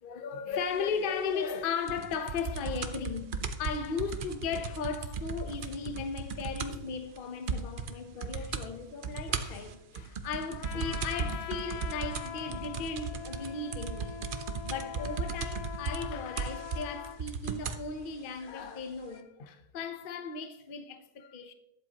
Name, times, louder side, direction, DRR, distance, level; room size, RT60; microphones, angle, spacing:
voice 1, 0.0-14.3 14.6-21.5, left 5 dB, 45° left, 0.8 m, -36 dB
sound 1, 1.9-6.9 7.2-7.3 7.5-7.9 8.2-8.7 9.0-17.9 18.7-18.8, right 5 dB, 55° right, 0.6 m, -36 dB
Trumpet, 10.6-17.2, left 8 dB, 80° left, 1.4 m, -43 dB
20.5 x 7.7 x 2.9 m
omnidirectional pair, 1.7 m